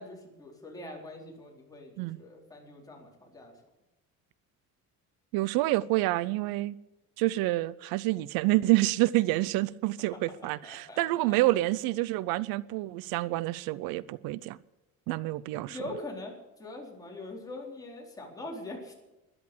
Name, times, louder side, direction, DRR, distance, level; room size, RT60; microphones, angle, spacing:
voice 1, 0.0-3.5 10.6-11.4 15.1-15.4 15.7-18.9, left 2 dB, 10° left, 4.2 m, -43 dB
voice 2, 5.3-6.8 7.2-14.6 15.1-15.8, right 18 dB, 85° right, 0.7 m, -28 dB
13.0 x 11.0 x 8.5 m
cardioid pair, 155°, 35 cm